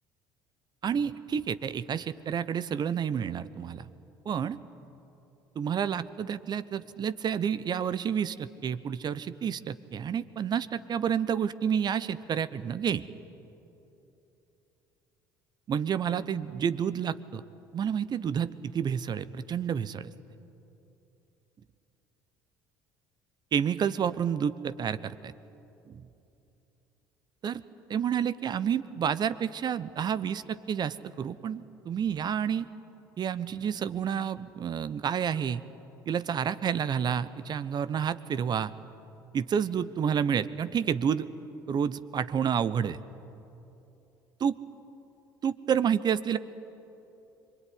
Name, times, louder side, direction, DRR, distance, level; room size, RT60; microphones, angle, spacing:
voice 1, 0.8-3.9 4.2-4.6 5.5-13.0 15.7-17.4 17.7-20.1 23.5-25.3 25.9-26.1 27.4-27.6 27.9-32.7 33.2-35.6 36.1-38.7 39.3-41.3 41.7-43.0 44.4-44.6 45.4-46.4, right 8 dB, 40° right, 15 dB, 1.0 m, -29 dB
26.0 x 23.0 x 9.7 m, 2.9 s
hypercardioid pair, 60°, 10 cm